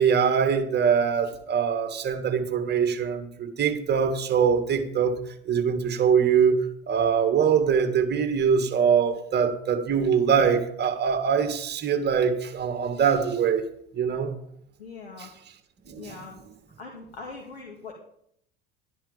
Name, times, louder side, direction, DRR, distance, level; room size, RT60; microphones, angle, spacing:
voice 1, 0.0-5.1 5.5-13.6 13.9-14.3 15.2-15.3 15.9-16.2, right 7 dB, 35° right, 8 dB, 2.3 m, -23 dB
voice 2, 14.8-15.3 16.0-16.5 16.8-17.9, left 4 dB, 85° left, 0 dB, 2.2 m, -41 dB
12.5 x 10.5 x 5.2 m, 0.70 s
hypercardioid pair, 75°, 30 cm